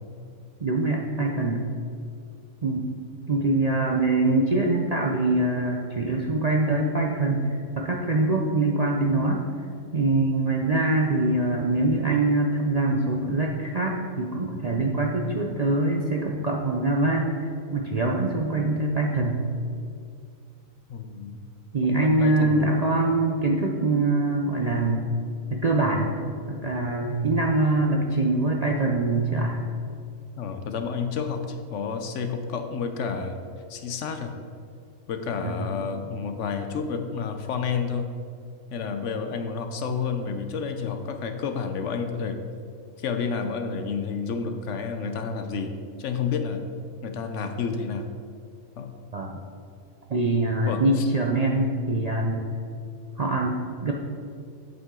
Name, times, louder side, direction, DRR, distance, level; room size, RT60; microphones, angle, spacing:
voice 1, 0.6-1.6 2.6-2.9 3.3-9.5 9.9-17.3 17.7-19.4 21.7-25.1 25.5-26.1 26.5-29.6 35.4-35.7 49.1-49.4 50.1-52.5 53.2-53.9, right 2 dB, 45° right, 0 dB, 0.5 m, -24 dB
voice 2, 20.9-21.4 21.8-22.6 30.4-33.4 33.7-34.3 35.1-38.1 38.7-42.4 43.0-45.7 46.0-46.6 47.0-48.1 48.8-48.9 50.7-51.1, left 5 dB, 65° left, 7 dB, 0.9 m, -30 dB
8.2 x 7.9 x 3.7 m, 2.4 s
omnidirectional pair, 1.4 m